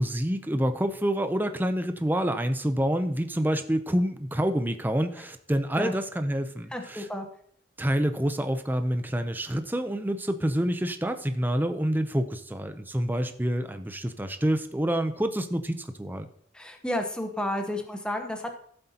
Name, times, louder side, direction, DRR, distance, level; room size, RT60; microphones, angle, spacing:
voice 1, 0.0-7.1 7.8-16.3, equal, 10° right, 8 dB, 0.5 m, -27 dB
voice 2, 6.7-7.3 16.5-18.6, left 1 dB, 5° left, 3 dB, 0.9 m, -31 dB
14.0 x 7.9 x 2.8 m, 0.63 s
head